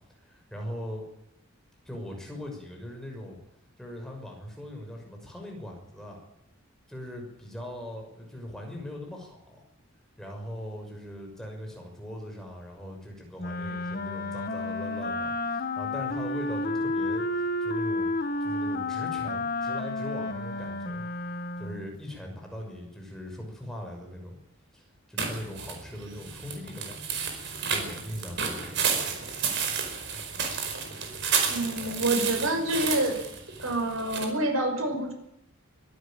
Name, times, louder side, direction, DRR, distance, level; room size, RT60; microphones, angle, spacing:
voice 1, 0.2-1.1 1.8-3.4 3.8-6.2 6.9-9.6 10.2-18.1 18.4-21.0 21.6-24.4 24.7-27.3 27.7-29.1, left 1 dB, ahead, 1 dB, 6.1 m, -40 dB
Wind instrument woodwind instrument, 13.4-21.9, left 2 dB, 45° left, 1.5 m, -31 dB
sound 1, 25.2-34.3, right 6 dB, 60° right, 4.8 m, -31 dB
voice 2, 31.5-33.2 33.6-35.1, right 1 dB, 85° right, 4 dB, 5.9 m, -27 dB
23.5 x 13.0 x 9.0 m, 0.82 s
head